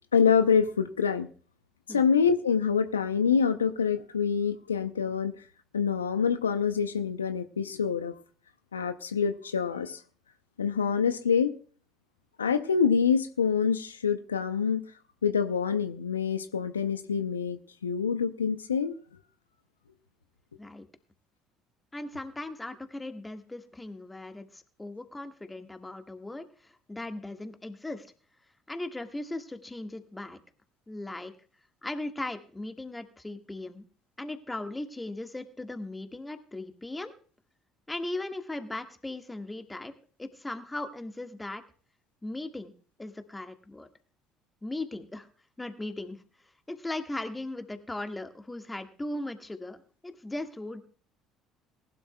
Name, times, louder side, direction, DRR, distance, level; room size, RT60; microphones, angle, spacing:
voice 1, 0.1-1.3 1.9-5.3 5.7-8.1 8.7-10.0 10.6-11.5 12.4-14.8 15.2-18.9, left 6 dB, 90° left, 0.5 m, -26 dB
voice 2, 21.9-28.1 28.7-30.4 30.9-31.3 31.8-33.8 34.2-37.1 37.9-39.9 40.2-41.6 42.2-42.7 43.0-43.9 44.6-45.3 45.6-46.2 46.7-49.8 50.0-50.8, left 2 dB, 15° left, 1.5 m, -38 dB
19.0 x 11.5 x 2.2 m
hypercardioid pair, 60°, 0 cm